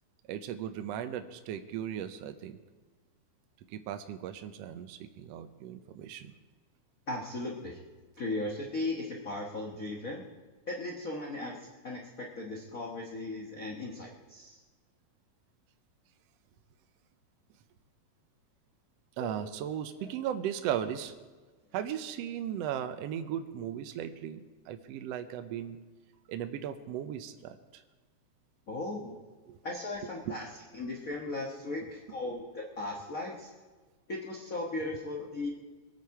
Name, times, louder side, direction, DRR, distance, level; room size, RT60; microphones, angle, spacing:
voice 1, 0.3-2.6 3.7-6.3 19.2-21.1 21.7-24.4 24.7-25.8 26.3-27.8 29.5-29.6 30.3-30.4, right 10 dB, 75° right, 9 dB, 1.6 m, -37 dB
voice 2, 7.1-7.8 8.2-10.2 10.7-14.6 19.2-19.5 20.0-20.1 28.7-29.2 29.6-30.5 30.7-33.5 34.1-35.5, left 2 dB, 45° left, -1 dB, 1.1 m, -37 dB
22.5 x 9.0 x 4.8 m, 1.3 s
omnidirectional pair, 3.4 m